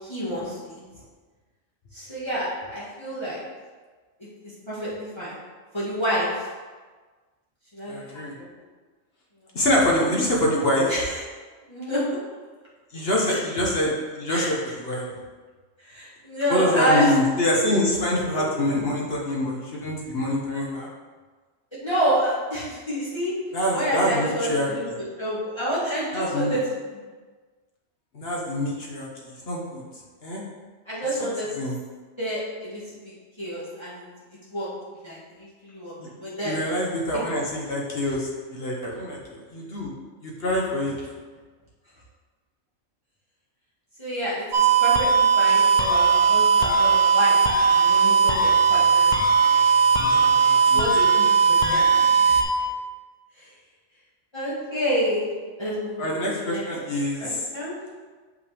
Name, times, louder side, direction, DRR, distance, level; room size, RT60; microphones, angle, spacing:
voice 1, 0.0-0.8 1.9-3.4 4.7-5.3 5.7-6.5 7.7-8.0 8.4-8.5 10.9-11.2 11.7-12.0 13.3-13.4 14.3-14.5 15.8-17.1 18.3-18.6 21.8-23.4 23.7-24.8 25.2-26.6 30.9-31.5 32.2-32.8 33.4-34.0 34.5-34.7 35.0-35.9 36.2-36.6 37.1-37.2 38.0-38.1 44.0-47.4 47.7-49.1 50.7-51.9 52.3-52.6 53.4-53.5 54.3-55.2 55.6-56.6 57.2-57.7, equal, 20° left, -10 dB, 1.9 m, -28 dB
voice 2, 7.9-8.3 9.5-10.9 12.9-15.1 16.5-20.9 23.5-24.9 26.1-26.6 28.1-29.8 30.2-30.4 31.4-31.8 36.0-36.1 36.4-39.9 40.2-40.9 50.0-50.9 56.0-57.4, left 1 dB, 50° left, -3 dB, 1.3 m, -25 dB
sound 1, 44.5-52.4, right 5 dB, 45° right, 0.6 m, -18 dB
6.6 x 5.8 x 3.4 m, 1.4 s
omnidirectional pair, 1.3 m